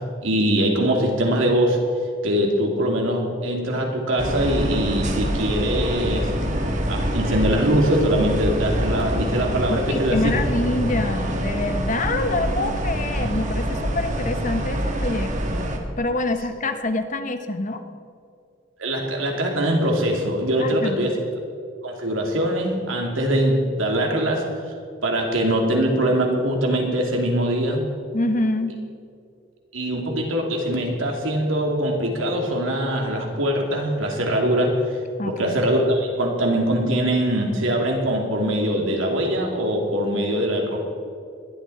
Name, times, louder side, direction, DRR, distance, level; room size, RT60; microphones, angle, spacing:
voice 1, 0.0-1.8 2.2-6.3 6.9-10.2 18.8-21.1 21.8-24.4 25.0-27.8 29.7-34.7 35.2-40.8, right 1 dB, 85° right, 0 dB, 2.8 m, -22 dB
sound 1, 4.2-15.8, equal, 40° right, 1.7 m, -25 dB
voice 2, 9.7-17.8 20.6-21.1 28.1-28.8 35.2-35.6, left 2 dB, 40° left, 8 dB, 1.0 m, -26 dB
20.5 x 12.5 x 4.2 m, 2.4 s
head